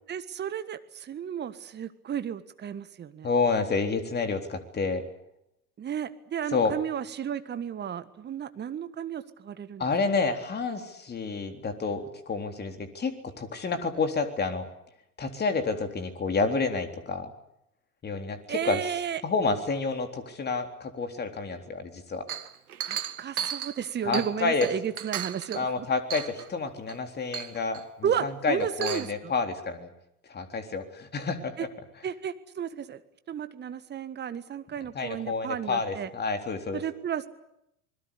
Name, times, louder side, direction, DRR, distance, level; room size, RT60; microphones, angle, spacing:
voice 1, 0.1-3.3 5.8-9.9 18.5-19.2 22.9-25.9 28.0-29.3 31.6-31.7 32.0-33.0 33.3-36.1 36.7-37.3, right 8 dB, 25° right, 12 dB, 1.6 m, -33 dB
voice 2, 3.2-5.0 6.5-6.8 9.8-14.7 15.2-17.3 18.0-18.8 19.2-22.3 24.1-24.7 25.5-29.9 30.3-31.5 34.9-36.8, left 4 dB, 20° left, 7 dB, 3.7 m, -29 dB
Chink clink, 22.3-24.4 24.6-25.6 26.1-26.5 26.9-27.0 27.3-27.8 28.6-29.1, right 9 dB, 75° right, 1.6 m, -35 dB
27.0 x 21.5 x 8.5 m, 0.80 s
figure-of-eight pair, 80°, 45 cm